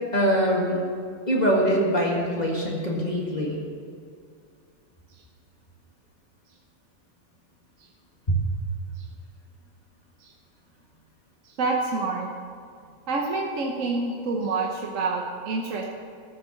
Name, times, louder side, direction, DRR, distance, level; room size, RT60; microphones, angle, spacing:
voice 1, 0.1-0.8 1.3-3.6 8.3-8.4, equal, 30° left, -3 dB, 1.8 m, -23 dB
voice 2, 11.6-12.3 13.1-15.9, right 3 dB, 65° right, 0 dB, 1.3 m, -27 dB
13.5 x 6.8 x 6.4 m, 2.3 s
omnidirectional pair, 1.5 m